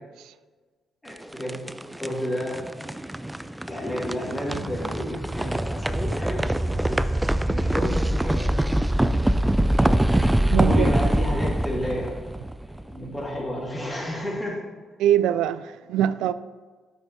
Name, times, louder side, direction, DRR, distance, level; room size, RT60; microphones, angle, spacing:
voice 1, 1.0-1.6 2.0-2.6 3.6-8.7 9.0-9.7 10.6-12.1 12.6-14.6, left 1 dB, 20° left, 2.8 m, -32 dB
sound 1, 1.1-13.2, right 1 dB, 10° right, 0.3 m, -24 dB
voice 2, 10.5-10.9 15.0-16.3, right 10 dB, 90° right, 0.3 m, -22 dB
9.1 x 5.6 x 4.3 m
cardioid pair, 90°, 0 cm